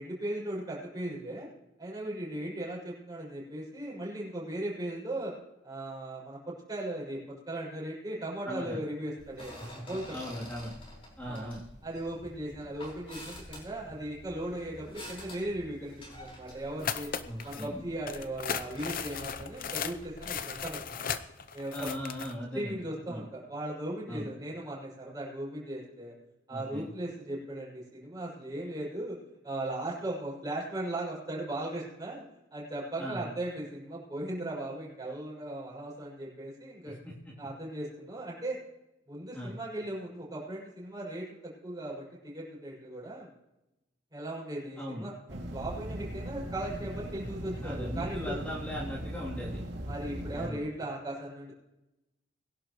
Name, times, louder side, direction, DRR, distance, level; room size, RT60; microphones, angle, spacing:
voice 1, 0.0-1.5 1.8-5.3 5.6-10.1 11.2-11.5 11.8-17.1 17.4-21.0 21.5-21.9 22.5-26.1 26.5-29.2 29.4-32.2 32.5-37.0 37.4-38.6 39.1-43.3 44.1-48.4 49.9-51.5, right 1 dB, 20° right, -5 dB, 6.3 m, -38 dB
voice 2, 8.4-8.8 9.9-10.7 11.2-11.6 17.3-17.8 21.7-23.2 24.1-24.3 26.5-26.9 33.0-33.3 36.8-37.4 39.3-39.5 44.8-45.1 47.6-49.6 50.3-50.6, equal, 10° left, -9 dB, 3.0 m, -39 dB
sound 1, 9.2-20.9, left 1 dB, 30° left, 4.9 m, -49 dB
sound 2, 16.8-17.7 18.1-22.3, left 7 dB, 50° left, 0.7 m, -36 dB
sound 3, 45.3-50.5, equal, 65° right, 2.4 m, -39 dB
22.5 x 11.5 x 3.1 m, 0.93 s
head